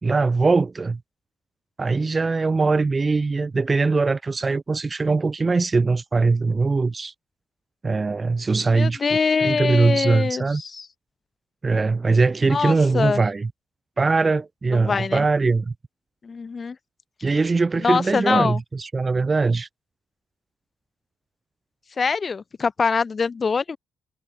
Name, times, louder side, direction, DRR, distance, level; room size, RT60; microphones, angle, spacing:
voice 1, 0.0-1.0 1.8-7.1 7.8-10.6 11.6-13.5 14.0-15.7 17.2-19.7, right 4 dB, 25° right, 3.1 m, -21 dB
voice 2, 8.7-10.9 12.5-13.2 14.7-15.2 16.2-16.8 17.8-18.6 22.0-23.8, left 5 dB, 35° left, 7.2 m, -23 dB
cardioid pair, 90°, 0 cm